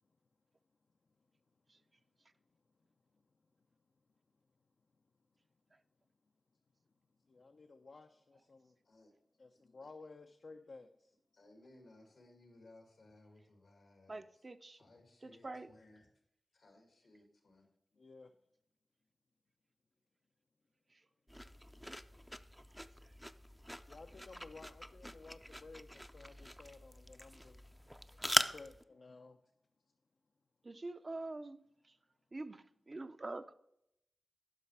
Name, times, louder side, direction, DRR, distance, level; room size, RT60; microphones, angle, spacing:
voice 1, 7.3-8.7 9.4-10.9 18.0-18.3 23.9-27.6 28.2-29.4, left 3 dB, 70° left, 0.6 m, -55 dB
voice 2, 11.3-14.4 14.7-16.1 16.5-17.7 28.1-28.2, left 2 dB, 85° left, 2.3 m, -62 dB
voice 3, 14.1-14.8 15.2-15.7 20.9-21.0 22.8-23.1 30.6-32.0 32.3-33.5, right 2 dB, 45° right, 0.6 m, -46 dB
sound 1, 21.3-28.8, equal, ahead, 0.5 m, -41 dB
9.7 x 5.8 x 4.8 m
cardioid pair, 50°, 0 cm